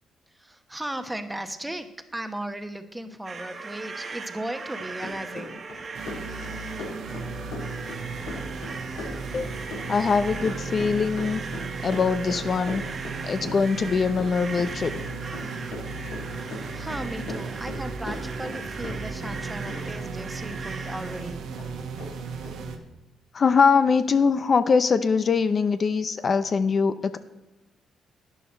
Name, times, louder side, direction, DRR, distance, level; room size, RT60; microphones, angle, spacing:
voice 1, 0.3-5.6 16.7-21.5, right 1 dB, 10° right, 8 dB, 1.1 m, -36 dB
sound 1, 3.3-21.2, right 4 dB, 40° right, 1.4 m, -39 dB
Run, 4.6-19.4 19.7-21.3 21.6-21.7 22.0-22.1 22.4-22.5, left 3 dB, 90° left, 4.0 m, -39 dB
sound 2, 6.0-22.8, right 4 dB, 75° right, 1.5 m, -36 dB
voice 2, 9.9-11.4 11.8-12.8 13.2-14.9 23.3-27.2, left 5 dB, 45° left, 11 dB, 0.6 m, -22 dB
12.0 x 9.8 x 4.5 m, 1.0 s
cardioid pair, 90°, 0 cm